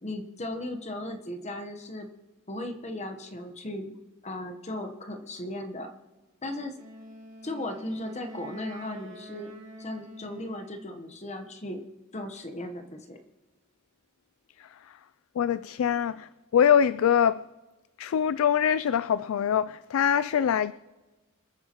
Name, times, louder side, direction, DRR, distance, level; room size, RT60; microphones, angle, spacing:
voice 1, 0.0-2.1 2.5-4.0 4.2-5.9 6.4-6.7 7.4-9.5 9.8-11.8 12.1-13.2, left 1 dB, 35° left, 1.0 m, -36 dB
Wind instrument woodwind instrument, 6.7-11.0, equal, 35° right, 2.4 m, -46 dB
voice 2, 15.4-17.4 18.0-20.7, left 8 dB, 85° left, 0.3 m, -24 dB
27.0 x 10.0 x 3.0 m
head